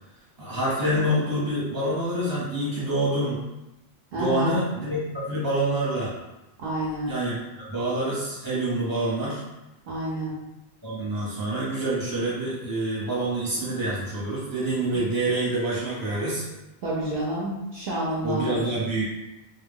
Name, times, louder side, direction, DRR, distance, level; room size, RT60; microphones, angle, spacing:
voice 1, 0.4-3.4 4.2-6.1 7.1-9.4 10.8-16.4 18.2-19.1, right 1 dB, 20° right, -7 dB, 0.7 m, -27 dB
voice 2, 4.1-4.6 6.6-7.1 9.9-10.3 16.8-18.7, right 1 dB, 60° right, -6 dB, 0.7 m, -29 dB
2.2 x 2.1 x 3.4 m, 0.99 s
omnidirectional pair, 1.2 m